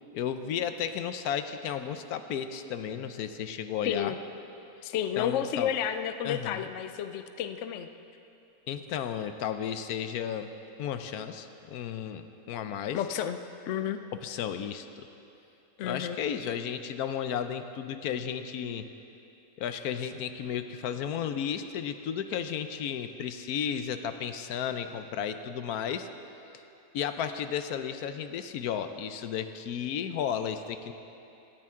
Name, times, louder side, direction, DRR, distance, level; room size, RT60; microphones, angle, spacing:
voice 1, 0.1-4.1 5.2-5.7 6.2-6.7 8.7-10.5 10.8-13.0 14.2-15.1 15.8-18.8 19.6-26.1 26.9-30.9, left 8 dB, 80° left, 9 dB, 1.1 m, -33 dB
voice 2, 3.8-4.2 4.8-7.9 12.9-13.4 13.6-14.0 15.8-16.2, left 9 dB, 65° left, 9 dB, 0.8 m, -31 dB
18.0 x 13.5 x 3.7 m, 2.8 s
omnidirectional pair, 1.6 m